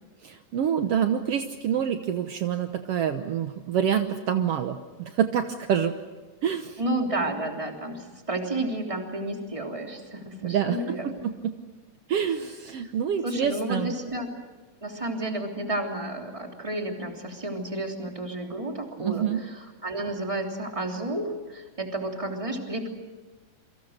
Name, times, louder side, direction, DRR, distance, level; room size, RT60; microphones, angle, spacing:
voice 1, 0.2-6.0 6.4-6.8 10.4-10.8 11.0-11.1 11.4-11.5 12.1-13.9 19.0-19.4, right 8 dB, 75° right, 7 dB, 1.4 m, -26 dB
voice 2, 6.8-11.2 12.8-12.9 13.2-14.3 14.8-22.9, right 1 dB, 10° right, 2 dB, 2.8 m, -31 dB
28.5 x 24.0 x 6.6 m, 1.3 s
omnidirectional pair, 4.1 m